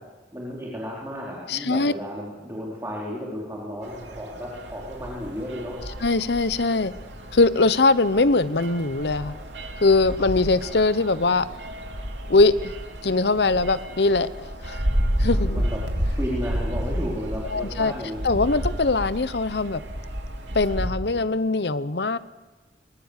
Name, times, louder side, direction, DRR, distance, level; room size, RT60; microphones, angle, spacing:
voice 1, 0.3-5.8 15.3-15.8 16.1-18.2, equal, 15° right, -5 dB, 4.4 m, -33 dB
voice 2, 1.5-1.9 6.0-6.9 7.3-9.4 9.8-11.5 12.3-12.7 13.0-14.3 14.6-14.8 15.2-15.6 17.5-17.9 18.2-19.8 20.5-22.2, left 3 dB, 65° left, 15 dB, 0.9 m, -21 dB
sound 1, 3.8-20.9, equal, 85° right, 2.9 m, -31 dB
24.0 x 22.5 x 8.3 m, 1.2 s
head